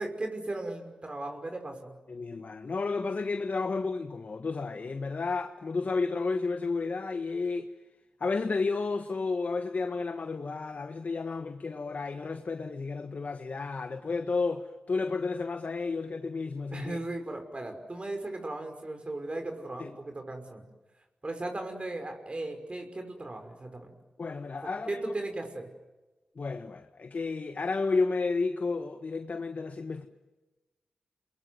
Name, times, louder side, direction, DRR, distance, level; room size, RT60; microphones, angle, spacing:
voice 1, 0.0-2.0 16.7-20.7 21.2-23.9 24.6-25.7, right 2 dB, 35° right, 5.8 m, -37 dB
voice 2, 2.1-7.7 8.2-17.0 19.8-19.9 24.2-25.1 26.4-30.1, left 4 dB, 55° left, 1.4 m, -32 dB
28.0 x 22.0 x 9.6 m
cardioid pair, 45°, 3 cm